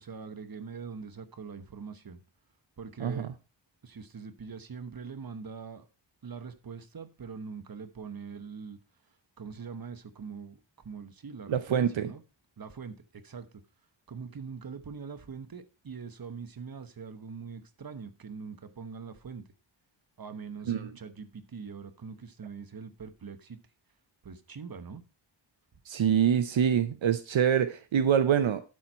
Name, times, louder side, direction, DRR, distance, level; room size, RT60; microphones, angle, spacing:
voice 1, 0.0-2.2 2.8-3.3 3.8-5.9 6.2-8.8 9.4-12.2 12.6-13.6 14.1-19.5 20.2-23.6 24.2-25.0, right 5 dB, 50° right, 1.1 m, -43 dB
voice 2, 11.5-12.1 20.7-20.9 25.9-28.6, right 8 dB, 80° right, 0.7 m, -25 dB
12.0 x 4.5 x 4.4 m
wide cardioid pair, 80°, 46 cm